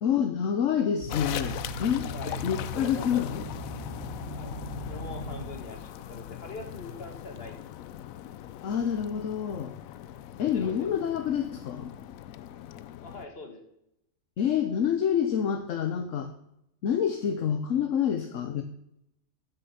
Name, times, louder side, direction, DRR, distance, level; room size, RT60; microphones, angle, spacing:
voice 1, 0.0-2.1 2.4-3.5 8.6-9.7 10.4-11.9 14.4-16.3 16.8-18.6, left 8 dB, 70° left, 7 dB, 1.2 m, -27 dB
sound 1, 1.0-6.0, left 1 dB, 35° right, 5.8 m, -38 dB
sound 2, 1.1-13.3, left 12 dB, 90° left, 1.0 m, -41 dB
voice 2, 2.1-2.4 2.7-3.2 4.3-4.6 4.9-7.6 10.5-11.0 13.0-13.6, left 2 dB, 45° left, 3 dB, 2.2 m, -43 dB
14.0 x 6.9 x 5.7 m, 0.81 s
omnidirectional pair, 1.4 m